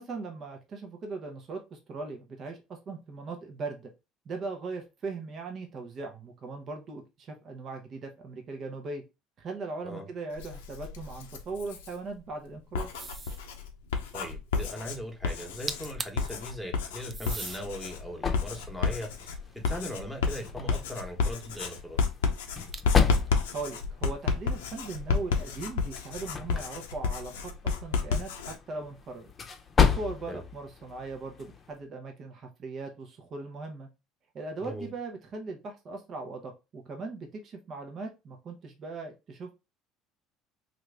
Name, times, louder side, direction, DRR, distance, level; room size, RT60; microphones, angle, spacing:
voice 1, 0.0-3.9 4.3-9.0 9.4-12.9 23.5-27.3 27.6-29.3 29.8-33.9 34.3-39.5, right 3 dB, 45° right, 0.8 m, -39 dB
Writing, 10.3-11.9 12.6-28.6, left 5 dB, 90° left, 0.5 m, -31 dB
sound 1, 13.0-13.5 15.4-15.5 15.7-16.3 17.1-17.6 18.3-19.8 22.7-23.3, right 4 dB, 30° right, 0.4 m, -39 dB
voice 2, 14.1-19.1 19.5-22.0 30.3-30.4 34.6-34.9, equal, ahead, 1.2 m, -39 dB
sound 2, 17.4-31.8, left 7 dB, 35° left, 0.7 m, -33 dB
2.9 x 2.6 x 3.3 m
supercardioid pair, 80°, 0 cm